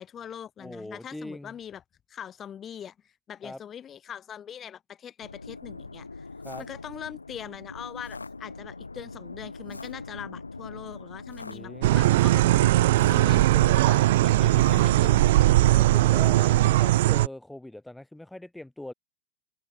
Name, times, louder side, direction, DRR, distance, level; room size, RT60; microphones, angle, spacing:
voice 1, 0.0-1.8 2.1-6.3 6.6-12.7 13.1-15.4, left 9 dB, 25° left, 7.6 m, -42 dB
voice 2, 0.6-1.6 3.4-3.6 6.4-6.6 11.5-12.1 14.4-14.9 15.7-18.9, left 1 dB, 5° left, 6.8 m, -41 dB
sound 1, 5.2-16.3, left 3 dB, 80° left, 2.3 m, -41 dB
sound 2, 11.8-17.3, right 16 dB, 55° right, 0.3 m, -20 dB
figure-of-eight pair, 90°, 0 cm